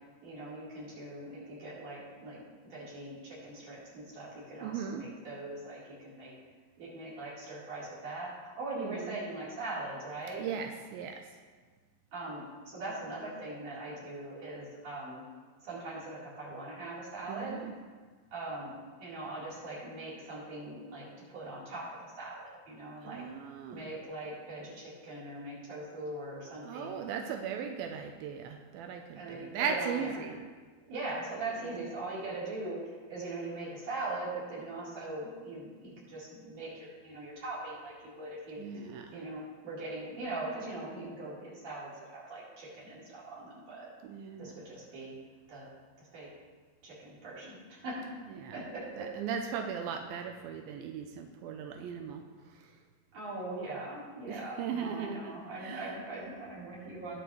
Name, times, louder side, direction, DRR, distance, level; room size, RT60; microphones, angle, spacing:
voice 1, 0.2-2.4 2.6-6.3 6.8-10.5 12.1-15.2 15.6-17.7 18.3-18.7 19.0-23.2 23.7-26.9 29.1-30.1 30.9-38.6 39.1-43.9 44.4-45.1 45.5-45.7 46.0-46.3 46.8-48.0 48.5-49.1 53.1-57.2, right 2 dB, 45° right, -8 dB, 5.0 m, -41 dB
voice 2, 4.6-5.0 8.8-9.2 10.4-11.2 17.3-17.7 23.0-23.9 26.6-30.4 38.6-39.2 44.0-44.6 48.3-48.6 49.0-52.2 52.6-52.7 54.3-55.9, right 7 dB, 90° right, 4 dB, 2.5 m, -38 dB
20.5 x 7.1 x 3.2 m, 1.4 s
omnidirectional pair, 4.3 m